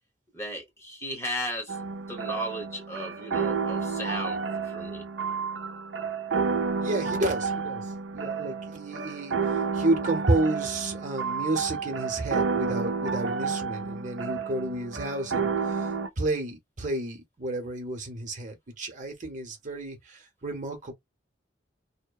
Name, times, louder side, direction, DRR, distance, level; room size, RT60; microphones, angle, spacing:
voice 1, 0.3-1.8 2.1-4.4 4.6-5.0, equal, 15° left, 1.0 m, -35 dB
sound 1, 1.7-16.1, right 5 dB, 80° right, 0.5 m, -30 dB
voice 2, 6.8-7.8 8.1-9.3 9.7-15.5 16.2-20.0 20.4-20.9, right 2 dB, 45° right, 0.8 m, -30 dB
2.8 x 2.1 x 2.3 m
head